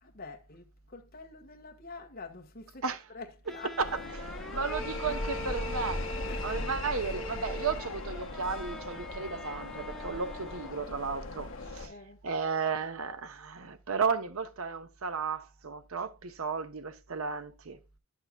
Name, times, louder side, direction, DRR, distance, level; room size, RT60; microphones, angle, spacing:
voice 1, 0.0-3.8 4.5-4.7 5.0-5.3 6.3-6.6 11.9-12.2, left 3 dB, 45° left, 1.4 m, -47 dB
sound 1, 3.5-11.0, equal, ahead, 0.3 m, -44 dB
sound 2, 3.8-11.9, left 2 dB, 65° left, 1.4 m, -38 dB
voice 2, 4.2-6.0 6.4-11.9 12.2-17.8, right 5 dB, 85° right, 0.9 m, -34 dB
11.0 x 6.6 x 2.3 m
head